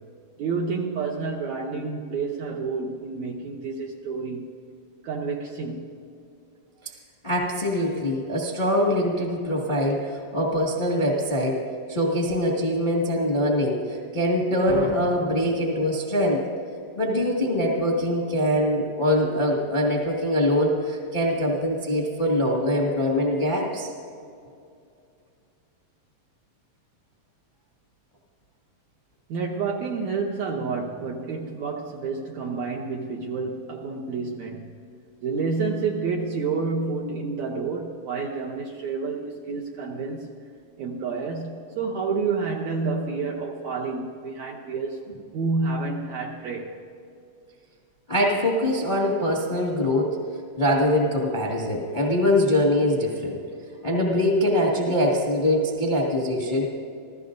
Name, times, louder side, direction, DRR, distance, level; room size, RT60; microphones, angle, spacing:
voice 1, 0.4-4.5 5.0-5.9 29.3-34.7 35.2-40.3 40.8-45.0 45.3-46.8, right 4 dB, 70° right, -1 dB, 1.8 m, -29 dB
voice 2, 7.2-11.6 11.9-16.5 17.0-23.9 48.1-50.2 50.6-53.4 53.8-56.7, left 1 dB, 30° left, -2 dB, 0.8 m, -23 dB
27.0 x 15.5 x 2.6 m, 2.4 s
omnidirectional pair, 4.1 m